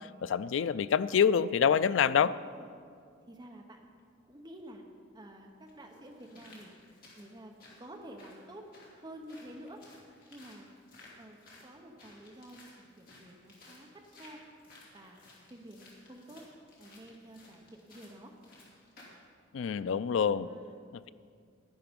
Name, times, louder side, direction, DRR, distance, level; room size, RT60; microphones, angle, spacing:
voice 1, 0.2-2.3 19.5-20.5, left 7 dB, 80° left, 16 dB, 0.3 m, -26 dB
voice 2, 2.3-2.7 3.3-3.9 4.3-4.8 5.1-6.7 7.2-8.7 9.0-9.8 10.3-10.7 11.2-14.4 14.9-15.2 15.5-16.5 16.8-18.3 20.1-20.9, right 1 dB, 20° right, 3 dB, 0.9 m, -50 dB
sound 1, 4.8-4.9 5.7-19.2 19.6-19.7, left 2 dB, 50° left, 2.7 m, -57 dB
11.0 x 10.5 x 5.2 m, 2.2 s
head